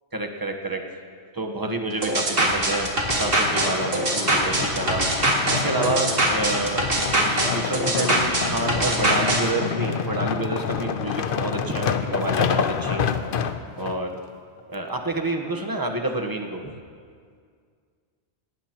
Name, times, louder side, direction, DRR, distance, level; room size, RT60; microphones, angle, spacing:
voice 1, 0.1-0.8 1.3-5.1 5.5-13.1 13.7-14.1 14.7-16.7, right 2 dB, 20° right, 3 dB, 1.1 m, -29 dB
sound 1, 2.0-9.4, right 1 dB, 60° right, 2.1 m, -22 dB
sound 2, 3.0-14.0 14.6-14.7, left 6 dB, 60° left, 0.8 m, -28 dB
18.5 x 18.0 x 3.0 m, 2.1 s
omnidirectional pair, 1.1 m